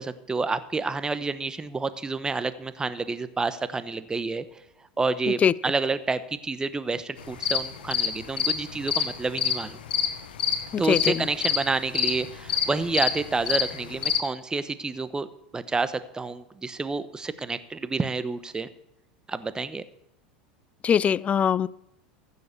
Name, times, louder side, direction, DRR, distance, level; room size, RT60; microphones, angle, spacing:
voice 1, 0.0-4.6 5.0-9.8 10.8-15.3 15.5-18.7 19.3-19.8, right 3 dB, 15° right, 13 dB, 0.9 m, -29 dB
sound 1, 7.2-14.2, left 7 dB, 85° left, 1.3 m, -27 dB
voice 2, 10.7-11.2 20.8-21.7, left 8 dB, 25° left, 22 dB, 0.4 m, -22 dB
15.0 x 6.9 x 6.8 m, 0.79 s
hypercardioid pair, 95°, 5 cm